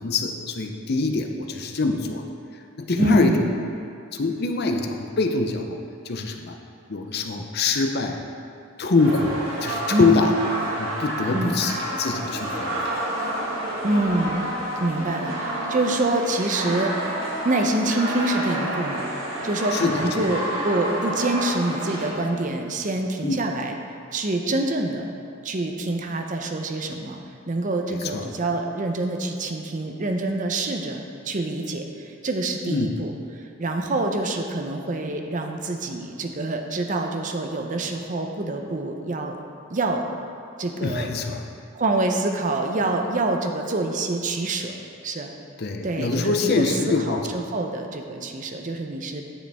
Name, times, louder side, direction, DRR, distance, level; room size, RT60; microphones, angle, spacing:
voice 1, 0.0-2.2 2.8-3.5 4.1-5.8 6.0-6.6 6.9-8.2 8.8-10.3 10.8-12.9 19.7-20.3 23.2-23.3 27.9-28.3 32.7-33.0 40.8-41.4 45.6-47.5, left 3 dB, 50° left, 4 dB, 0.6 m, -24 dB
voice 2, 3.0-3.5 9.9-10.1 11.3-11.5 13.8-14.5 14.8-17.2 17.4-19.1 19.4-23.7 24.1-25.1 25.4-27.2 27.5-39.4 39.7-40.0 40.6-41.1 41.7-45.3 45.8-49.3, right 2 dB, 40° right, 4 dB, 0.6 m, -26 dB
sound 1, 9.0-22.1, right 1 dB, 65° right, 1.7 m, -29 dB
10.0 x 6.5 x 3.5 m, 2.5 s
head